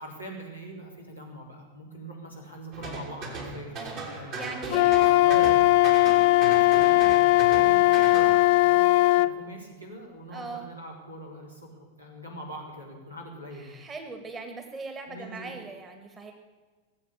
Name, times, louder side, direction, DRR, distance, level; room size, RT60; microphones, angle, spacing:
voice 1, 0.0-4.7 5.2-5.6 6.4-13.8 15.1-15.6, right 1 dB, 85° right, 0 dB, 3.8 m, -43 dB
sound 1, 2.7-8.5, right 3 dB, 45° right, 3.3 m, -37 dB
voice 2, 4.3-5.5 10.3-10.7 13.5-16.3, right 3 dB, 20° right, 5 dB, 1.9 m, -40 dB
Wind instrument woodwind instrument, 4.7-9.3, left 18 dB, 50° left, 0.4 m, -19 dB
18.5 x 8.1 x 8.7 m, 1.3 s
figure-of-eight pair, 90°, 0 cm